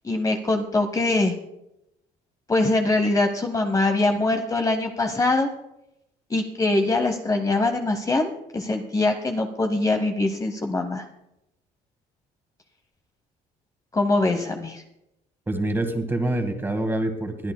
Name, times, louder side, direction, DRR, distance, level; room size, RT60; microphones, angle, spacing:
voice 1, 0.0-1.3 2.5-5.5 6.3-11.0 13.9-14.8, left 2 dB, 20° left, 5 dB, 0.9 m, -23 dB
voice 2, 15.5-17.5, right 1 dB, 15° right, 7 dB, 1.7 m, -26 dB
21.5 x 11.5 x 2.2 m, 0.86 s
cardioid pair, 110°, 17 cm